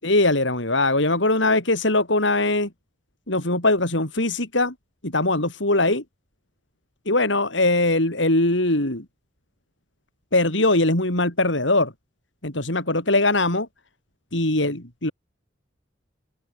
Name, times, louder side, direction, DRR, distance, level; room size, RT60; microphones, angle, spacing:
voice 1, 0.0-2.7 3.3-4.7 5.0-6.0 7.1-9.0 10.3-11.9 12.4-13.7 14.3-15.1, left 2 dB, 75° left, 5.9 m, -21 dB
head